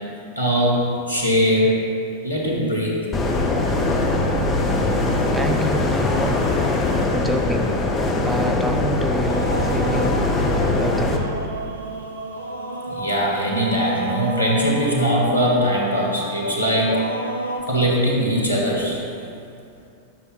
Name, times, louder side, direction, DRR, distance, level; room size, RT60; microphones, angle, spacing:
voice 1, 0.4-1.7 2.2-3.0 12.9-17.0 17.7-19.0, equal, 85° left, -3 dB, 1.3 m, -21 dB
sound 1, 3.1-11.2, left 2 dB, 25° left, 0.8 m, -21 dB
voice 2, 5.0-6.4 7.1-10.3 10.7-11.3, right 1 dB, 5° right, 4 dB, 0.5 m, -28 dB
sound 2, 9.3-17.6, equal, 80° right, 0.6 m, -30 dB
10.5 x 6.5 x 2.4 m, 2.6 s
figure-of-eight pair, 90°, 0 cm